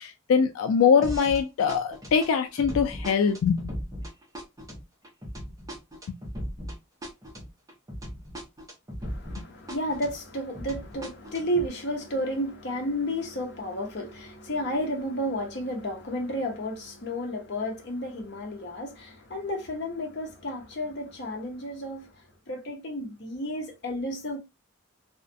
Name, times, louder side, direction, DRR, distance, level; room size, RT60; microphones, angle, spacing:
voice 1, 0.0-3.7, left 6 dB, 85° left, 0.3 m, -23 dB
sound 1, 1.0-1.4 1.7-9.4 9.7-11.7, equal, 15° right, 0.6 m, -37 dB
voice 2, 9.0-22.1 22.5-24.4, equal, 50° left, 0.7 m, -32 dB
2.3 x 2.1 x 2.5 m
head